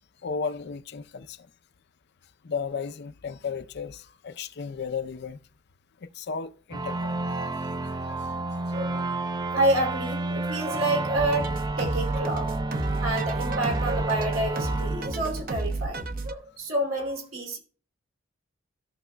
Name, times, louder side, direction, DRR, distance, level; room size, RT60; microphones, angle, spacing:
voice 1, 0.2-1.5 2.4-5.4 6.0-7.5, left 5 dB, 55° left, 0.6 m, -34 dB
sound 1, 6.7-16.0, right 2 dB, 20° right, 0.4 m, -31 dB
voice 2, 8.7-9.0 9.5-12.5 13.0-17.6, right 1 dB, 90° right, 2.9 m, -28 dB
sound 2, 11.2-16.3, right 2 dB, 45° right, 0.8 m, -31 dB
16.5 x 6.1 x 2.2 m
head